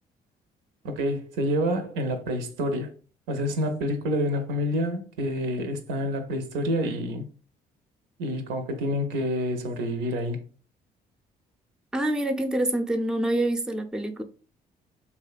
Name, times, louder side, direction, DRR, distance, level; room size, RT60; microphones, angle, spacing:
voice 1, 0.8-2.9 3.3-7.3 8.2-10.4, equal, 80° right, 0.5 m, -28 dB
voice 2, 11.9-14.2, right 1 dB, 5° right, 0.4 m, -26 dB
2.7 x 2.1 x 2.4 m
hypercardioid pair, 55°, 20 cm